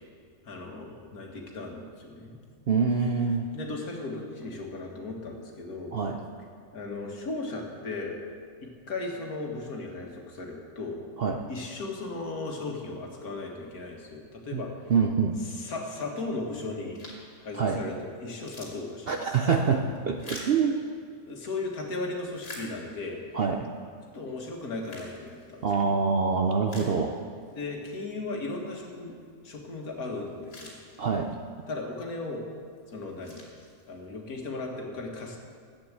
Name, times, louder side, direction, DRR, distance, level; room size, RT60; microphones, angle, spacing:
voice 1, 0.4-2.4 3.5-6.0 6.7-8.2 8.9-11.0 11.5-14.9 15.4-17.1 17.4-19.3 21.3-23.2 24.1-25.8 27.5-29.2 29.4-30.8 31.7-32.4 32.9-33.4 33.9-35.4, left 3 dB, 75° left, 1 dB, 2.1 m, -36 dB
voice 2, 2.7-3.5 5.9-6.2 11.2-11.4 14.5-14.6 14.9-15.4 17.5-17.8 19.1-20.8 23.3-23.7 25.6-27.2 31.0-31.4, right 5 dB, 55° right, 4 dB, 0.6 m, -25 dB
sound 1, 16.9-17.4 17.9-18.0 18.3-21.4 22.0-23.2 23.8-23.9 24.5-25.9 26.3-26.4 26.7-27.5 27.9-28.0 30.0-30.1 30.3-31.4 32.0-32.4 32.9-34.2, left 1 dB, 55° left, 2.9 m, -46 dB
11.5 x 8.7 x 7.5 m, 2.2 s
omnidirectional pair, 1.6 m